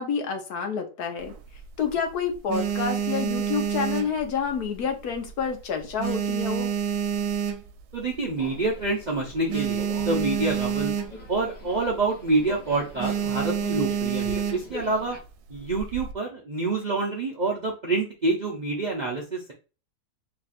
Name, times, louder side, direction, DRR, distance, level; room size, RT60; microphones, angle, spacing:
voice 1, 0.0-1.3 1.8-6.7, left 6 dB, 75° left, 5 dB, 1.3 m, -29 dB
sound 1, 1.2-1.9 2.3-4.8 5.1-5.5 5.8-8.0 8.5-8.6 8.8-8.9 9.2-11.4 11.7-12.0 12.3-12.5 13.0-14.8 15.5-16.1, right 8 dB, 80° right, 1.1 m, -28 dB
voice 2, 7.9-10.9 11.3-15.2 15.5-19.5, right 3 dB, 50° right, -2 dB, 0.5 m, -27 dB
Subway metro underground, 8.3-15.2, left 1 dB, 30° left, 1.0 m, -43 dB
3.3 x 2.4 x 4.0 m, 0.33 s
omnidirectional pair, 1.7 m